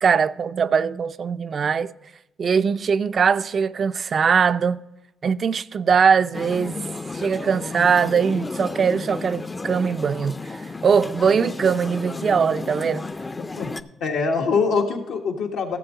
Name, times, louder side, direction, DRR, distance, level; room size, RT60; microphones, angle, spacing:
voice 1, 0.0-1.9 2.4-4.8 5.2-6.8 7.1-13.0, right 6 dB, 45° right, 0.4 m, -21 dB
sound 1, 6.3-13.8, left 3 dB, 25° left, 0.4 m, -33 dB
voice 2, 13.4-13.7 14.0-15.8, left 5 dB, 90° left, 1.5 m, -24 dB
14.5 x 7.3 x 3.8 m
cardioid pair, 90°, 0 cm